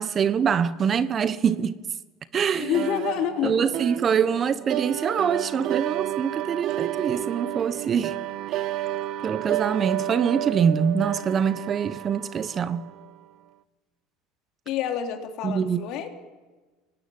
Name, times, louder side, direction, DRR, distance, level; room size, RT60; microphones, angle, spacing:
voice 1, 0.0-1.8 2.3-2.9 3.4-8.2 8.5-8.9 9.2-12.8 15.4-15.8, right 7 dB, 40° right, 1.3 m, -24 dB
voice 2, 2.5-3.5 14.6-16.1, left 10 dB, 60° left, 3.4 m, -28 dB
sound 1, 2.6-13.1, right 14 dB, 60° right, 0.9 m, -31 dB
25.0 x 19.5 x 9.6 m
hypercardioid pair, 75°, 0 cm